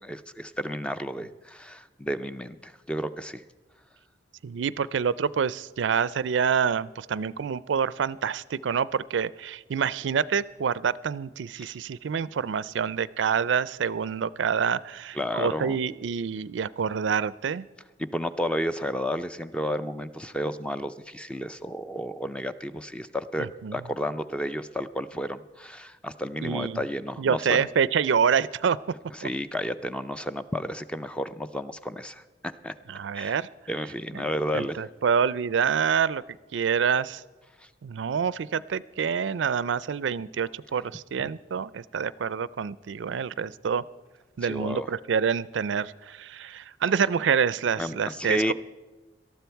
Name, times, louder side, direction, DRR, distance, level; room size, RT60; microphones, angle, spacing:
voice 1, 0.0-3.4 11.6-11.7 15.2-15.8 18.0-27.6 29.2-32.7 33.2-33.3 33.7-34.8 44.4-44.9 47.8-48.5, equal, 5° left, 11 dB, 0.4 m, -32 dB
voice 2, 4.4-17.7 23.4-23.8 26.4-26.8 27.2-28.8 29.2-29.3 32.9-33.5 34.5-36.2 36.5-37.2 37.8-43.8 44.4-48.5, right 6 dB, 90° right, 20 dB, 0.4 m, -27 dB
18.5 x 13.0 x 4.6 m, 1.2 s
head